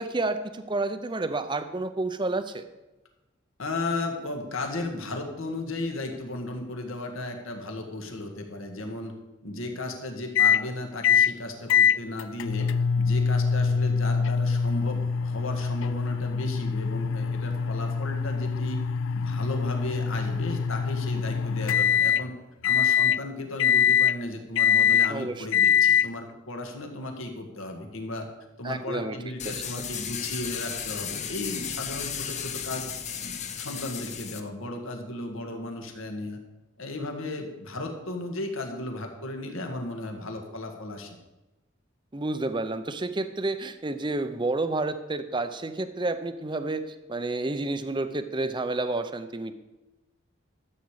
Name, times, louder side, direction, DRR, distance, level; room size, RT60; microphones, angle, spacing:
voice 1, 0.0-2.6 25.1-25.5 28.6-29.2 29.4-29.5 42.1-49.6, right 2 dB, 25° right, 10 dB, 0.6 m, -30 dB
voice 2, 3.6-9.1 9.4-12.7 13.0-18.8 19.1-22.3 22.6-28.3 28.6-32.9 33.2-36.4 36.8-41.2, left 2 dB, 80° left, 4 dB, 1.7 m, -35 dB
sound 1, 10.3-10.6 11.0-11.3 11.7-22.2 22.6-23.2 23.6-24.2 24.6-25.1 25.5-26.1, left 7 dB, 65° left, 0.3 m, -23 dB
sound 2, 29.4-34.4, left 7 dB, 35° left, 0.8 m, -34 dB
13.0 x 8.4 x 4.8 m, 1.0 s
head